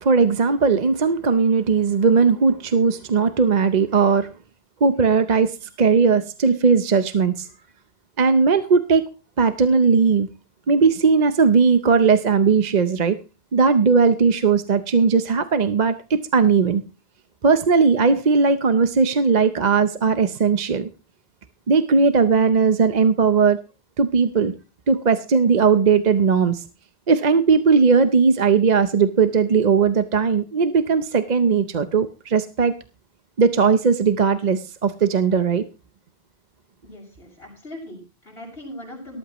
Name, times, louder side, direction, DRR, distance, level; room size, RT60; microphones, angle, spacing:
voice 1, 0.0-4.3 4.8-7.5 8.2-9.0 9.4-10.3 10.7-13.2 13.5-16.8 17.4-20.9 21.7-23.6 24.0-24.5 24.9-26.6 27.1-32.7 33.4-35.6, right 5 dB, 45° right, 10 dB, 0.8 m, -18 dB
voice 2, 36.8-39.2, left 1 dB, 75° left, -5 dB, 6.7 m, -39 dB
18.0 x 13.5 x 3.0 m, 0.30 s
omnidirectional pair, 1.0 m